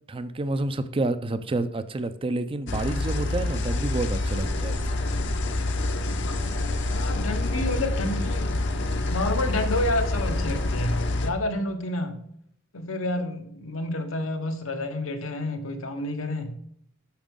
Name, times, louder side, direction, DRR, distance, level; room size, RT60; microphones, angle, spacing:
voice 1, 0.1-4.8, right 2 dB, 25° right, 12 dB, 0.4 m, -29 dB
sound 1, 2.7-11.3, left 2 dB, 60° left, 0.8 m, -27 dB
voice 2, 6.9-8.5 9.1-12.2 12.7-16.6, left 1 dB, 85° left, 6 dB, 1.2 m, -29 dB
8.9 x 6.3 x 3.6 m, 0.71 s
head